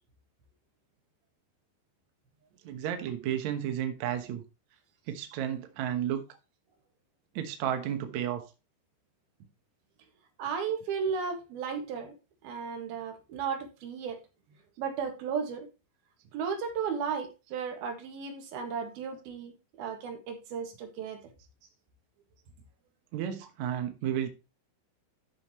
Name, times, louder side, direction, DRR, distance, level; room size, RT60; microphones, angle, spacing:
voice 1, 2.6-4.4 5.1-6.2 7.4-8.5 23.1-24.3, right 10 dB, 85° right, 1.6 m, -32 dB
voice 2, 10.4-12.1 12.4-14.2 14.8-15.7 16.3-19.5 19.8-21.2, right 6 dB, 65° right, 3.2 m, -34 dB
12.5 x 6.5 x 3.1 m
omnidirectional pair, 5.4 m